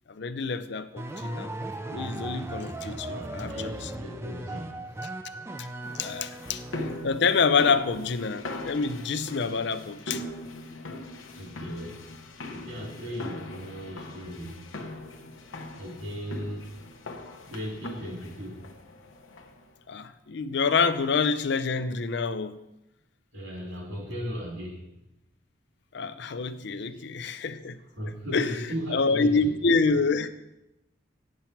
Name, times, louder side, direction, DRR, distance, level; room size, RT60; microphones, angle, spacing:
voice 1, 0.1-1.5 1.9-3.9 5.9-6.6 7.0-10.2 19.9-22.6 25.9-27.8 28.3-28.6 28.9-30.3, left 4 dB, 60° left, 0.5 m, -27 dB
sound 1, 1.0-7.4, right 1 dB, 15° right, 0.4 m, -37 dB
voice 2, 3.1-4.7 11.3-12.0 12.5-14.6 15.8-16.7 17.5-18.6 23.3-24.8 26.9-27.0 28.0-29.6, equal, 70° right, 2.9 m, -36 dB
sound 2, 5.8-19.7, left 1 dB, 85° left, 0.9 m, -40 dB
8.4 x 7.5 x 4.5 m
head